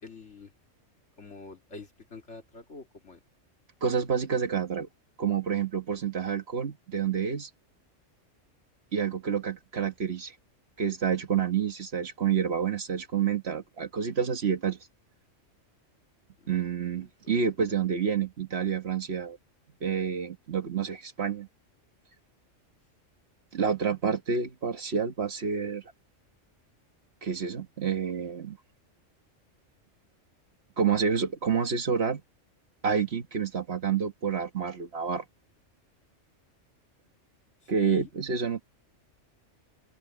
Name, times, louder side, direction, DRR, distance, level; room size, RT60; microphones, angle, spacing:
voice 1, 0.0-0.5 1.2-3.2 16.4-16.6 16.9-17.1 17.7-17.8 37.6-38.1, left 4 dB, 65° left, 2.7 m, -46 dB
voice 2, 3.8-4.9 5.2-7.5 8.9-10.4 10.8-14.8 16.5-19.4 19.8-21.5 23.5-25.8 27.2-28.6 30.8-32.2 32.8-35.2 37.7-38.6, right 6 dB, 55° right, 1.5 m, -28 dB
open air
omnidirectional pair, 1.3 m